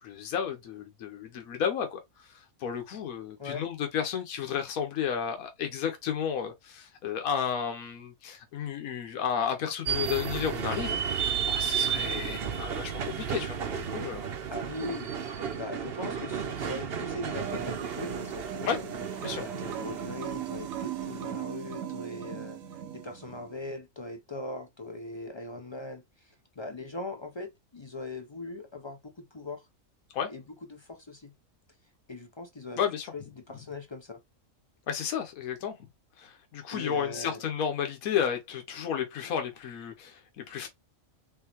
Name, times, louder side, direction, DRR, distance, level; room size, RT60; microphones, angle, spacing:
voice 1, 0.0-12.9 13.2-14.2 18.7-18.8 19.2-19.4 30.1-30.3 32.8-33.1 34.9-35.9 36.2-40.7, left 8 dB, 85° left, 1.3 m, -32 dB
sound 1, 9.9-21.4, right 8 dB, 55° right, 0.8 m, -33 dB
voice 2, 14.5-15.1 15.5-18.8 19.4-22.6 22.9-29.7 30.3-30.4 30.7-31.3 32.1-32.8 33.1-34.2 36.7-37.4, left 2 dB, 40° left, 0.4 m, -40 dB
sound 2, 17.2-23.5, right 9 dB, 85° right, 1.1 m, -39 dB
3.8 x 3.6 x 2.9 m
omnidirectional pair, 1.5 m